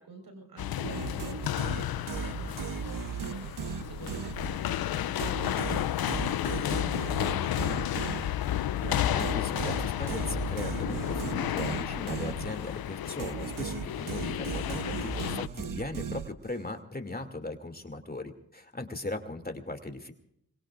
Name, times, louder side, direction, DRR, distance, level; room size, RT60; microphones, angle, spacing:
voice 1, 0.0-8.1 14.2-14.5, right 2 dB, 80° right, 4 dB, 4.8 m, -49 dB
sound 1, 0.6-15.5, left 12 dB, 80° left, 0.5 m, -32 dB
sound 2, 0.8-4.8 5.2-12.8 13.2-16.7, right 6 dB, 65° right, 0.9 m, -37 dB
voice 2, 9.1-20.1, left 2 dB, 25° left, 6 dB, 2.5 m, -38 dB
26.0 x 22.0 x 2.5 m, 0.73 s
cardioid pair, 45°, 36 cm